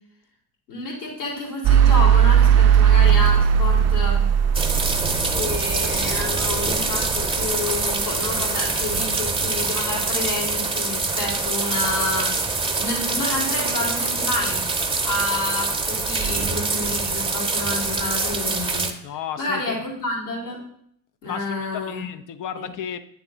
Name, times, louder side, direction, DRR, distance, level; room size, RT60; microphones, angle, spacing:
voice 1, 0.7-4.2 5.3-12.3 12.8-14.7 15.0-18.9 19.4-20.6 21.2-22.0 22.6-22.7, left 2 dB, 80° left, -4 dB, 2.3 m, -29 dB
sound 1, 1.6-7.8, right 8 dB, 35° right, 0.4 m, -18 dB
sound 2, 4.5-18.9, right 3 dB, 10° right, 0.9 m, -24 dB
voice 2, 19.0-19.7 21.3-23.0, left 9 dB, 45° left, 11 dB, 0.5 m, -33 dB
8.6 x 3.5 x 3.8 m, 0.68 s
hypercardioid pair, 55°, 48 cm